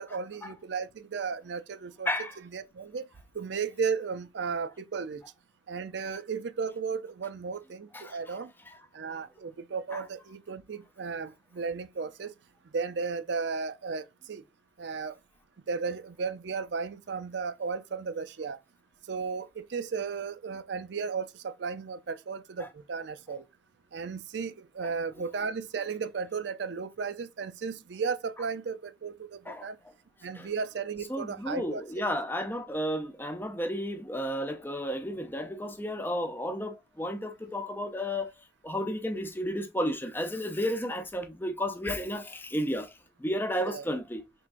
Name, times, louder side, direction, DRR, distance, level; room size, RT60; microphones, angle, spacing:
voice 1, 0.0-3.1 3.3-5.2 5.7-8.5 8.9-12.3 12.7-14.4 14.8-15.2 15.7-18.6 19.1-23.4 23.9-29.8 30.2-31.8 43.6-43.9, right 5 dB, 65° right, 0.4 m, -35 dB
voice 2, 31.1-38.3 38.6-42.9 43.2-44.2, equal, 10° left, 0.6 m, -32 dB
4.4 x 3.5 x 2.5 m
head